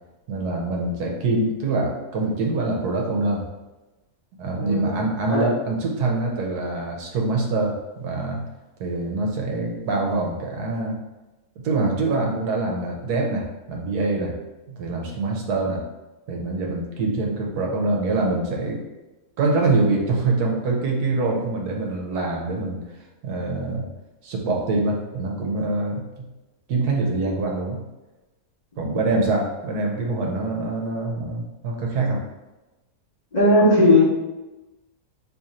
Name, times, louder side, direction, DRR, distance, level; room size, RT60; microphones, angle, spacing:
voice 1, 0.3-3.4 4.4-8.4 8.8-11.0 11.6-14.4 14.7-15.8 16.3-18.8 19.4-22.8 23.2-23.9 24.2-26.3 26.7-27.8 28.8-32.2, right 2 dB, 80° right, 0 dB, 1.2 m, -24 dB
voice 2, 4.6-4.9 5.3-5.4 28.9-29.1 33.3-34.0, left 1 dB, 30° left, -8 dB, 0.9 m, -17 dB
3.0 x 2.5 x 4.1 m, 1.1 s
omnidirectional pair, 1.7 m